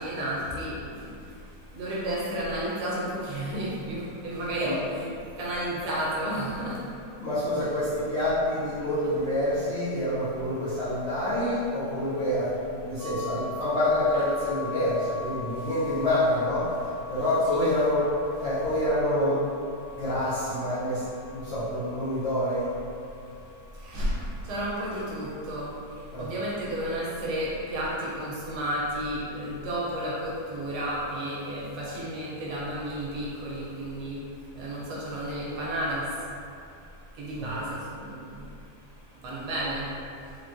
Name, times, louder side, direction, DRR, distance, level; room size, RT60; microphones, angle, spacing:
voice 1, 0.0-6.9 15.6-15.7 17.5-17.7 23.7-34.3 34.5-36.3 37.1-38.5 39.1-39.9 40.3-40.4, right 1 dB, 70° right, -6 dB, 1.1 m, -32 dB
voice 2, 7.2-12.5 12.8-16.7 17.1-18.1 18.4-19.4 20.0-21.0 21.3-22.7 26.1-26.3 37.4-37.5, left 1 dB, 60° left, -14 dB, 0.8 m, -27 dB
sound 1, 13.0-24.7, left 3 dB, 45° right, 1.0 m, -42 dB
3.4 x 2.2 x 2.5 m, 2.5 s
omnidirectional pair, 1.9 m